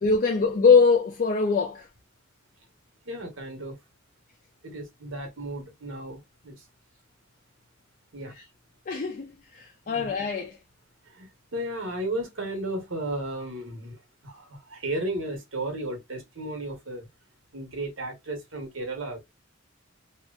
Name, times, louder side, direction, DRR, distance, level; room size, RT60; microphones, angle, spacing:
voice 1, 0.0-1.9 8.3-8.4 8.9-10.6, left 5 dB, 45° left, 0.4 m, -22 dB
voice 2, 3.1-3.8 4.6-6.5 8.1-8.3 9.9-10.1 11.2-14.0 14.2-17.1 17.5-19.2, right 1 dB, 90° right, 1.2 m, -34 dB
3.0 x 2.2 x 2.3 m
head